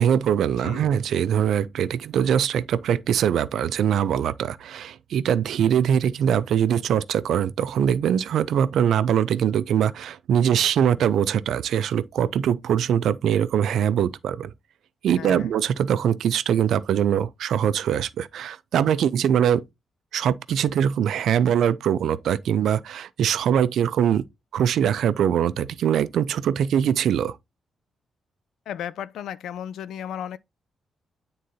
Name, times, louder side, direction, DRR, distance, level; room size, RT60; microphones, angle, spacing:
voice 1, 0.0-14.5 15.0-19.6 20.1-24.2 24.5-27.4, right 9 dB, 75° right, 0.4 m, -22 dB
voice 2, 15.2-15.5 28.7-30.4, left 9 dB, 90° left, 0.4 m, -34 dB
9.3 x 3.8 x 2.7 m
wide cardioid pair, 170°, 0 cm